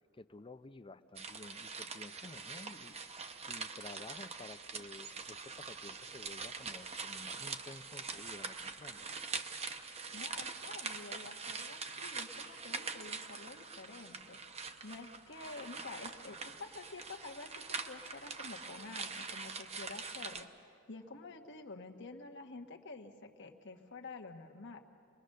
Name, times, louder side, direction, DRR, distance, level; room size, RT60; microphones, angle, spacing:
voice 1, 0.1-9.1, left 2 dB, 25° left, 11 dB, 0.6 m, -52 dB
sound 1, 1.2-20.5, right 4 dB, 30° right, 0.8 m, -44 dB
voice 2, 10.1-14.4 14.8-24.8, left 3 dB, 60° left, 3 dB, 1.4 m, -49 dB
26.5 x 21.0 x 6.5 m, 2.4 s
head